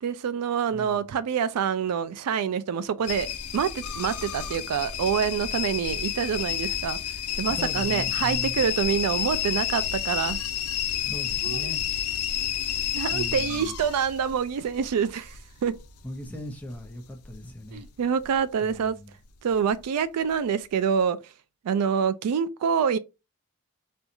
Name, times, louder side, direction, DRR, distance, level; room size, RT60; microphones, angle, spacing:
voice 1, 0.0-7.0 7.4-10.4 11.4-11.7 12.9-15.8 17.7-19.0 19.4-21.2 21.6-23.0, right 7 dB, 85° right, 0.4 m, -26 dB
voice 2, 0.7-1.1 7.5-8.6 11.0-11.8 13.1-13.7 16.0-17.8 18.6-19.1, left 1 dB, 5° left, 0.7 m, -38 dB
sound 1, 3.0-17.9 18.2-18.8 19.4-19.8 20.3-20.4, left 10 dB, 70° left, 0.5 m, -31 dB
4.3 x 2.3 x 2.6 m
head